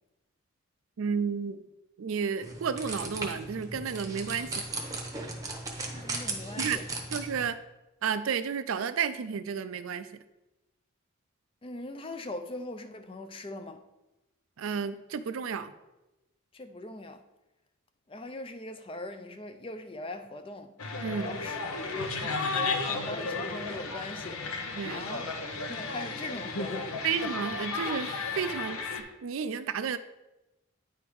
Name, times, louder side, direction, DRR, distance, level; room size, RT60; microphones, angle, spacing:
voice 1, 1.0-1.6 2.0-4.6 6.6-6.8 7.1-7.6 8.0-10.1 14.6-15.7 21.0-21.4 24.7-25.1 27.0-28.8 29.2-30.0, right 6 dB, 70° right, 0.4 m, -32 dB
sound 1, 2.4-7.5, right 2 dB, 15° right, 0.8 m, -37 dB
voice 2, 6.0-6.8 11.6-13.8 16.5-17.2 18.1-20.7 21.2-24.4 24.9-25.3 25.7-27.0, left 2 dB, 25° left, 0.4 m, -41 dB
sound 2, 20.8-29.0, left 3 dB, 80° left, 0.8 m, -34 dB
9.4 x 3.5 x 4.7 m
head